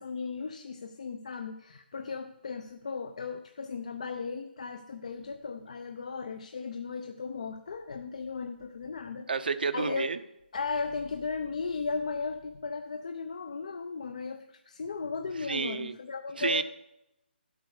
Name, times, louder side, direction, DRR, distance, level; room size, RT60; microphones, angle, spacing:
voice 1, 0.0-9.3 9.7-10.1 10.5-16.6, left 4 dB, 40° left, 7 dB, 0.5 m, -36 dB
voice 2, 9.3-10.2 15.5-15.9 16.4-16.6, right 4 dB, 55° right, 12 dB, 0.6 m, -30 dB
11.5 x 8.1 x 4.8 m, 0.85 s
hypercardioid pair, 175°, 6 cm